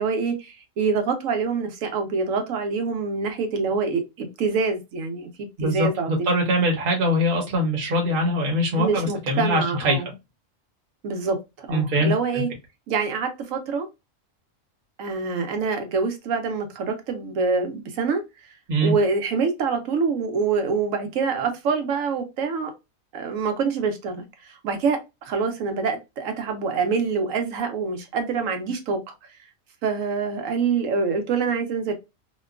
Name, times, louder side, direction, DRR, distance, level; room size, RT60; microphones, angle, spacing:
voice 1, 0.0-6.1 8.8-10.1 11.0-12.5 12.9-13.9 15.0-18.2 18.8-22.7 23.1-25.0 25.3-29.0 29.8-31.9, right 5 dB, 80° right, 1.1 m, -25 dB
voice 2, 5.6-10.0 11.7-12.4 18.7-18.9, equal, 45° right, 0.9 m, -23 dB
2.9 x 2.2 x 2.3 m
omnidirectional pair, 1.4 m